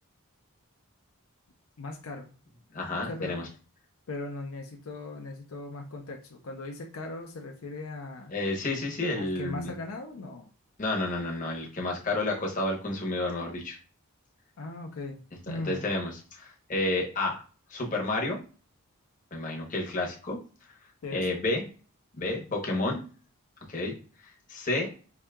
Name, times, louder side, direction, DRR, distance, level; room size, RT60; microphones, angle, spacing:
voice 1, 1.8-2.3 3.0-3.4 4.1-8.3 9.2-10.5 14.6-15.2 15.5-15.9 21.0-21.4, left 2 dB, 70° left, 2 dB, 0.5 m, -38 dB
voice 2, 2.7-3.5 8.3-9.7 10.8-13.8 15.5-17.4 17.7-18.4 19.3-20.4 21.1-21.6 22.1-23.0 23.7-23.9 24.5-24.9, left 2 dB, 35° left, 0 dB, 0.8 m, -30 dB
4.8 x 2.7 x 2.2 m, 0.38 s
head